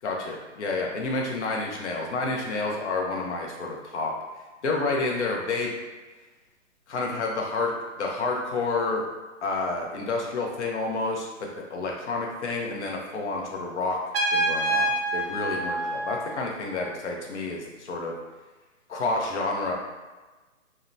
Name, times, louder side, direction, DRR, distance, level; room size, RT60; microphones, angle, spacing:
voice 1, 0.0-4.1 4.6-5.7 6.9-9.0 9.4-14.0 14.3-18.2 18.9-19.7, left 3 dB, 60° left, 0 dB, 0.7 m, -29 dB
Trumpet, 14.1-16.8, right 1 dB, 50° right, 0.4 m, -27 dB
2.8 x 2.1 x 2.5 m, 1.2 s
hypercardioid pair, 155°, 39 cm